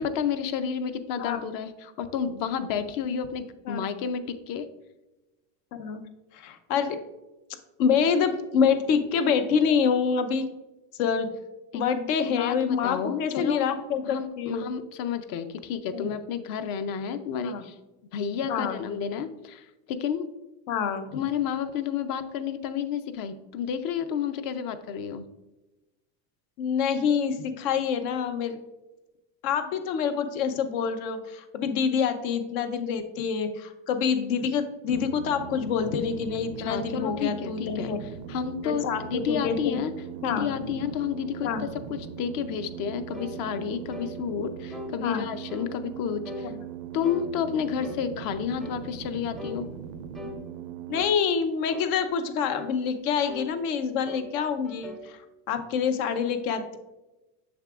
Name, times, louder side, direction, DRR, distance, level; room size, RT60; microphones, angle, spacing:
voice 1, 0.0-4.7 11.7-11.8 12.4-13.7 14.0-17.8 18.1-20.3 21.1-25.2 36.6-39.9 40.2-46.5 46.9-49.7, left 7 dB, 55° left, 11 dB, 0.6 m, -31 dB
voice 2, 6.3-7.0 7.8-10.5 11.0-11.3 11.7-14.7 15.9-16.1 17.4-17.6 18.5-18.8 20.7-21.2 26.6-28.6 29.4-38.0 38.6-39.8 40.2-40.5 41.4-41.6 45.0-45.3 50.9-55.2 55.5-56.8, left 6 dB, 80° left, 9 dB, 0.9 m, -26 dB
sound 1, 34.9-51.0, right 9 dB, 75° right, 0.5 m, -40 dB
sound 2, 43.1-43.4 43.9-44.2 44.7-44.9 45.5-45.7 46.2-46.5 47.0-47.3 47.8-48.1 48.6-48.8 49.4-49.6 50.1-50.4 50.9-51.2 51.7-52.0 52.5-52.7 53.3-53.5 54.1-54.3 54.6-55.1, left 3 dB, ahead, 0.4 m, -39 dB
7.2 x 5.8 x 2.4 m, 1.0 s
supercardioid pair, 125°, 42 cm